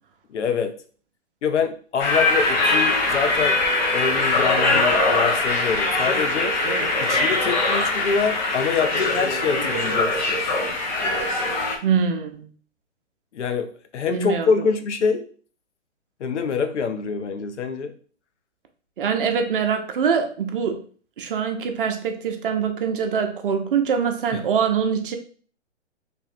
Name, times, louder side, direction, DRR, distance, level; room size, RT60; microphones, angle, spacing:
voice 1, 0.3-0.7 1.4-3.6 3.9-6.6 7.0-10.4 13.3-15.2 16.2-17.9, left 5 dB, 70° left, 8 dB, 0.7 m, -25 dB
sound 1, 2.0-11.8, left 2 dB, 40° left, 1.0 m, -22 dB
voice 2, 11.8-12.5 14.1-14.5 19.0-20.8 21.2-25.2, right 6 dB, 50° right, 5 dB, 0.7 m, -23 dB
3.4 x 2.6 x 4.2 m, 0.43 s
hypercardioid pair, 140°, 36 cm